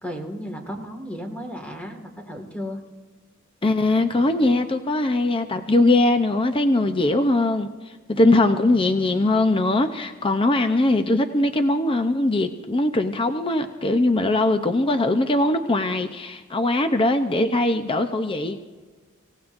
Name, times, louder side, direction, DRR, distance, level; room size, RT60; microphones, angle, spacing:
voice 1, 0.0-2.8, equal, 5° left, 2 dB, 1.9 m, -34 dB
voice 2, 3.6-7.7 8.1-18.6, left 2 dB, 25° left, 7 dB, 0.7 m, -21 dB
26.0 x 16.5 x 2.6 m, 1.3 s
head